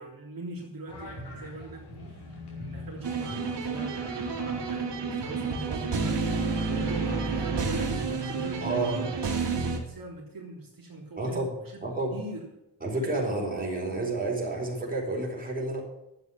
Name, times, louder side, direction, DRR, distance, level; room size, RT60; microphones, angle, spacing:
voice 1, 0.0-1.8 2.1-2.3 2.6-11.8 12.1-12.5, right 2 dB, 55° right, -3 dB, 3.4 m, -41 dB
sound 1, 0.9-9.4, equal, 70° left, 4.8 m, -42 dB
sound 2, 3.0-9.8, right 4 dB, 75° right, 2.6 m, -30 dB
voice 2, 8.6-9.0 11.2-11.5 11.8-12.2 12.8-15.8, right 2 dB, 20° right, -3 dB, 4.4 m, -30 dB
11.5 x 8.2 x 7.1 m, 0.90 s
wide cardioid pair, 145°, 42 cm